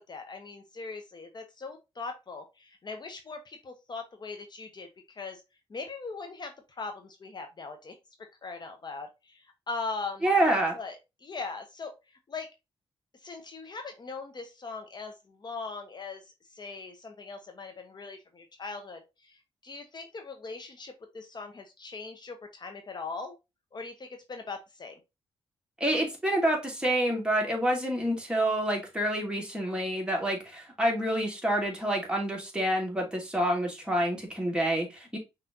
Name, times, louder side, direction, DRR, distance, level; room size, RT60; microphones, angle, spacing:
voice 1, 0.1-5.4 5.7-10.3 10.7-11.0 11.2-11.9 12.3-12.5 13.2-16.2 16.5-23.4 23.7-25.0, left 4 dB, 45° left, 5 dB, 1.0 m, -40 dB
voice 2, 10.2-10.8 25.8-35.2, right 1 dB, 10° right, 0 dB, 2.4 m, -27 dB
5.8 x 3.3 x 2.7 m, 0.24 s
cardioid pair, 85°, 10 cm